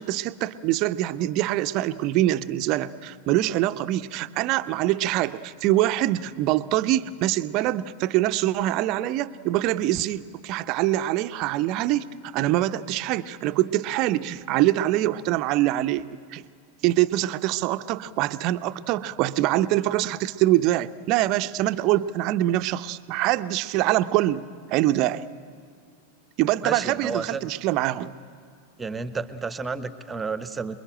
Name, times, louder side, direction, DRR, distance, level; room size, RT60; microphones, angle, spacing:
voice 1, 0.0-16.1 16.3-16.4 16.8-25.2 26.4-28.1, right 15 dB, 40° right, 11 dB, 0.8 m, -24 dB
voice 2, 26.6-27.5 28.8-30.8, right 4 dB, 15° right, 12 dB, 1.1 m, -31 dB
27.5 x 22.0 x 8.9 m, 2.2 s
figure-of-eight pair, 90°, 0 cm